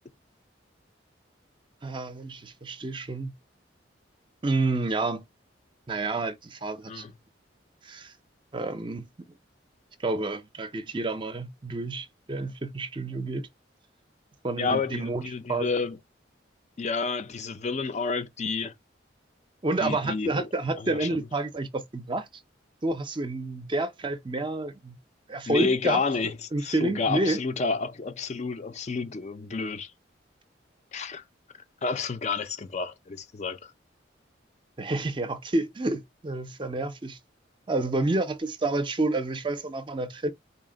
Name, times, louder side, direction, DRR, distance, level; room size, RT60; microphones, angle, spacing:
voice 1, 1.8-3.3 4.4-5.2 5.9-7.0 7.8-8.1 8.5-9.1 10.0-13.5 14.4-15.7 19.6-22.3 22.8-25.0 25.3-26.0 26.5-27.4 34.8-37.2 37.7-40.3, right 2 dB, 25° right, 0.5 m, -29 dB
voice 2, 14.6-16.0 16.8-18.7 19.8-20.5 20.8-21.1 25.5-29.9 30.9-31.2 31.8-33.7, left 4 dB, 35° left, 0.4 m, -30 dB
3.9 x 2.1 x 3.7 m
head